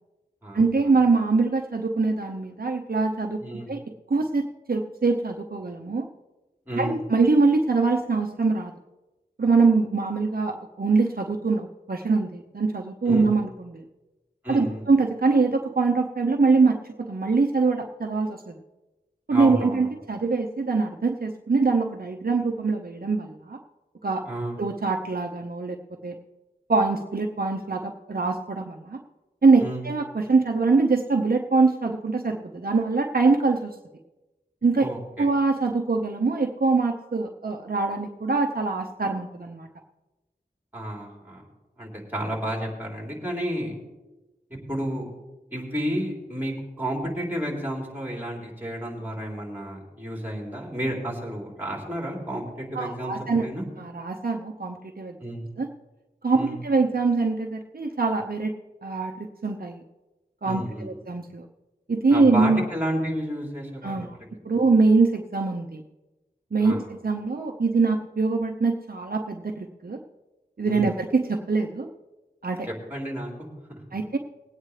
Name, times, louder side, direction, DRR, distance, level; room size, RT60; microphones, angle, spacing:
voice 1, 0.5-3.4 3.7-3.8 4.1-6.1 6.7-8.7 9.4-13.8 14.5-18.6 19.3-23.6 24.0-24.2 24.6-25.8 26.0-26.2 26.7-29.0 29.4-33.7 34.6-34.9 35.2-39.7 52.7-53.5 53.8-55.2 55.6-55.7 56.2-58.5 58.8-59.8 60.4-61.4 61.9-62.6 63.8-64.2 64.4-65.8 66.5-70.0 70.6-71.9 72.4-72.7 73.9-74.2, right 4 dB, 60° right, 2 dB, 0.8 m, -23 dB
voice 2, 3.4-3.7 6.7-7.0 13.0-13.3 14.4-14.8 19.3-19.9 24.2-24.6 29.6-29.8 34.8-35.3 40.7-41.4 41.8-43.7 44.7-45.1 45.5-53.1 53.4-53.6 55.2-55.5 56.3-56.6 60.4-60.9 62.1-64.1 66.6-66.8 70.6-70.8 72.9-73.3, right 1 dB, 10° right, -1 dB, 3.5 m, -31 dB
20.5 x 9.0 x 3.2 m, 1.1 s
wide cardioid pair, 50°, 17 cm